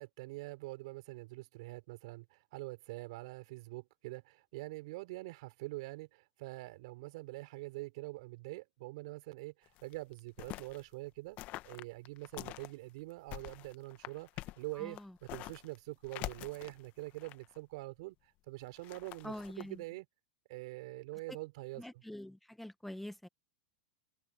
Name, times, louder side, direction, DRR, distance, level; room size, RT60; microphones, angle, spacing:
voice 1, 0.0-11.4 11.6-18.1 18.5-20.1 20.5-21.8, right 21 dB, 65° right, 4.6 m, -45 dB
sound 1, 9.7-10.8 11.4-12.7 13.1-15.8 16.0-17.6 18.6-19.6, left 18 dB, 45° left, 0.9 m, -46 dB
voice 2, 14.7-15.1 19.2-19.8 21.8-23.3, left 1 dB, 5° left, 1.1 m, -45 dB
hypercardioid pair, 120°, 4 cm